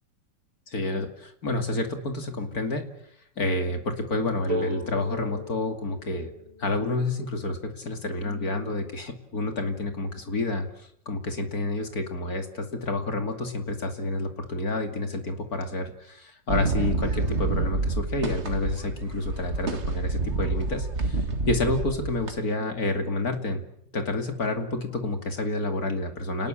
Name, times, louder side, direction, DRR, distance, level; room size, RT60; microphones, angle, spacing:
voice 1, 0.7-2.8 3.4-6.3 6.6-10.7 11.1-23.7 23.9-26.5, left 2 dB, 55° left, 6 dB, 3.0 m, -29 dB
sound 1, 4.5-8.2, left 1 dB, 20° right, 3.3 m, -37 dB
sound 2, 16.5-22.4, right 3 dB, 40° right, 2.0 m, -28 dB
29.0 x 19.5 x 8.6 m, 0.72 s
omnidirectional pair, 1.9 m